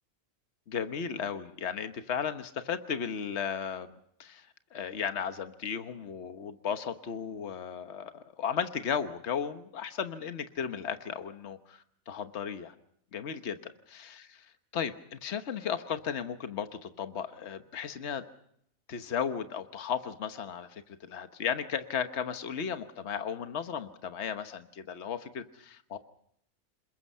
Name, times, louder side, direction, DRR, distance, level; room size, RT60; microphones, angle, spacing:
voice 1, 0.7-12.7 13.1-14.3 14.7-18.2 18.9-26.0, left 7 dB, 55° left, 9 dB, 1.4 m, -35 dB
28.0 x 21.5 x 5.6 m, 0.72 s
omnidirectional pair, 1.4 m